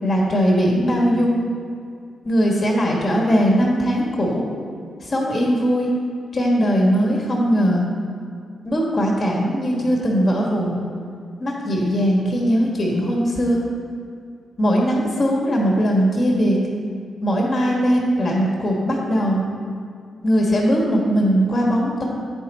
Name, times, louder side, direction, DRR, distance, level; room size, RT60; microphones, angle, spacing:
voice 1, 0.0-1.4 2.2-4.4 5.0-5.9 6.3-7.8 8.6-10.8 11.4-13.6 14.6-16.6 17.2-19.4 20.2-22.0, equal, 50° left, -2 dB, 1.6 m, -19 dB
9.1 x 4.4 x 4.2 m, 2.3 s
hypercardioid pair, 45°, 0 cm